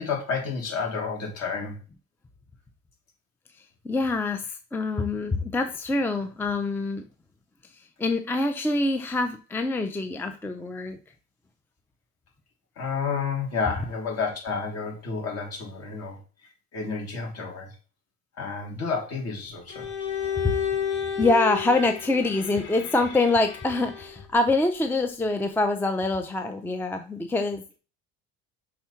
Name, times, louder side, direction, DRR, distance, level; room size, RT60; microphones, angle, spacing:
voice 1, 0.0-1.8 12.8-16.2 16.7-17.7 18.4-19.9, left 5 dB, 50° left, -1 dB, 3.3 m, -30 dB
voice 2, 3.8-7.1 8.0-11.0 20.2-20.5 21.2-27.8, left 2 dB, 5° left, 7 dB, 0.5 m, -25 dB
Bowed string instrument, 19.7-24.2, left 8 dB, 90° left, 2.7 m, -31 dB
5.9 x 3.7 x 5.7 m, 0.35 s
cardioid pair, 140°, 31 cm